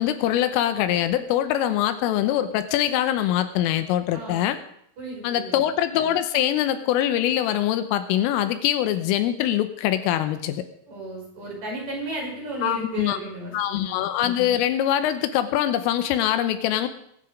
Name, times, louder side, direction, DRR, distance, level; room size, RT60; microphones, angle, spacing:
voice 1, 0.0-4.6 5.2-10.7 12.6-13.2 13.5-16.9, left 11 dB, 80° left, 10 dB, 3.4 m, -23 dB
voice 2, 4.1-4.4 5.0-5.6 10.9-14.0, right 1 dB, 35° right, -2 dB, 6.8 m, -34 dB
22.5 x 9.8 x 5.2 m, 0.71 s
omnidirectional pair, 5.9 m